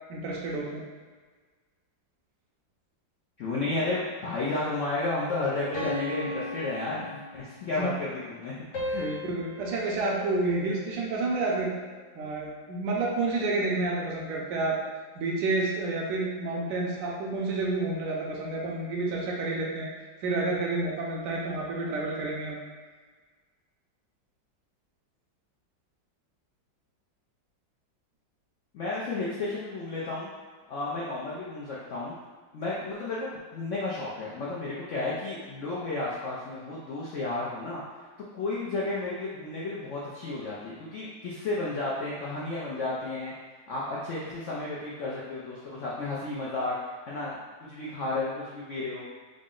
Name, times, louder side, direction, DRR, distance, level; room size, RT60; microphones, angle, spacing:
voice 1, 0.1-0.8 7.8-7.9 9.0-11.7 12.2-14.8 15.2-19.9 20.2-22.6, right 2 dB, 75° right, -3 dB, 1.2 m, -29 dB
voice 2, 3.4-8.6 8.8-9.1 28.7-30.3 30.7-32.2 32.5-37.8 38.3-43.3 43.7-47.4 47.7-49.0, left 2 dB, 90° left, -7 dB, 0.6 m, -32 dB
sound 1, 5.7-7.7 8.7-11.1, left 2 dB, 70° left, 1.6 m, -37 dB
3.8 x 2.1 x 3.7 m, 1.5 s
omnidirectional pair, 2.0 m